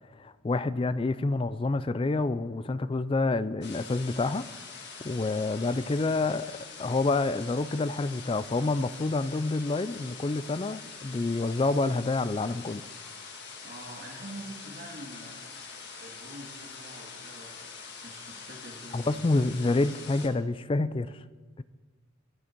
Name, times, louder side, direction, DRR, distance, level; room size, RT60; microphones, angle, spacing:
voice 1, 0.2-4.5 5.0-6.5 6.8-12.8 18.9-21.1 21.6-21.7, left 3 dB, 25° left, 15 dB, 0.3 m, -28 dB
sound 1, 3.6-20.3, left 5 dB, 50° left, 1.8 m, -44 dB
voice 2, 13.6-15.4 16.0-19.5, right 1 dB, 45° right, 0 dB, 2.0 m, -46 dB
23.0 x 9.9 x 4.5 m, 1.4 s
head